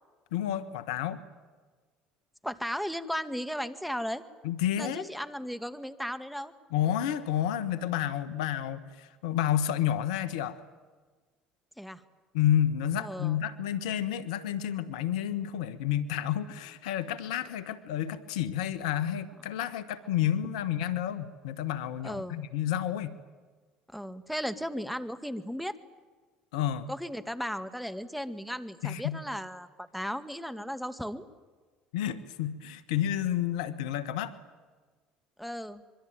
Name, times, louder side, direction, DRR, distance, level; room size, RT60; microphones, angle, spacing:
voice 1, 0.3-1.2 4.4-5.1 6.7-10.6 12.3-23.2 26.5-26.9 28.8-29.2 31.9-34.4, left 11 dB, 80° left, 13 dB, 1.4 m, -30 dB
voice 2, 2.4-4.2 4.8-6.5 11.8-12.0 13.0-13.4 22.0-22.4 23.9-25.7 26.9-31.3 35.4-35.8, equal, ahead, 11 dB, 2.1 m, -36 dB
25.0 x 24.0 x 9.2 m, 1.4 s
hypercardioid pair, 65°, 4 cm